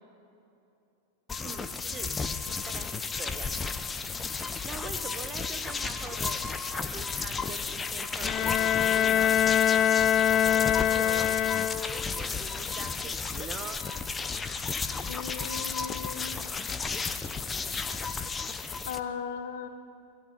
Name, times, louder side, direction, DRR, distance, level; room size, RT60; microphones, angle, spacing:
sound 1, 1.3-19.0, left 4 dB, 15° left, 1.0 m, -33 dB
voice 1, 1.4-2.1 2.6-3.5 4.6-6.4 6.7-9.9 10.5-11.4 11.8-13.8, right 6 dB, 25° right, 7 dB, 1.6 m, -44 dB
Bowed string instrument, 8.2-12.2, left 10 dB, 35° left, 0.6 m, -24 dB
voice 2, 15.1-16.4 18.9-19.7, left 7 dB, 55° left, 9 dB, 1.5 m, -37 dB
28.5 x 22.5 x 4.3 m, 2.8 s
figure-of-eight pair, 90°, 0 cm